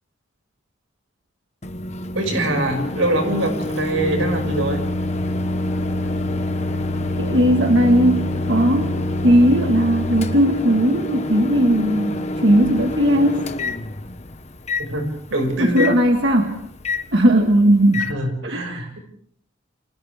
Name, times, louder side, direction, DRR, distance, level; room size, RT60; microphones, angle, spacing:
Microwave oven, 1.6-18.1, left 2 dB, 35° left, 1.2 m, -26 dB
voice 1, 2.1-4.8 14.8-15.9 17.9-18.8, right 1 dB, 85° right, 5 dB, 6.2 m, -23 dB
voice 2, 7.2-9.0 9.2-13.5 15.6-16.6 17.1-18.0 18.4-18.9, right 1 dB, 60° right, 3 dB, 1.7 m, -17 dB
30.0 x 26.5 x 3.6 m, 0.63 s
head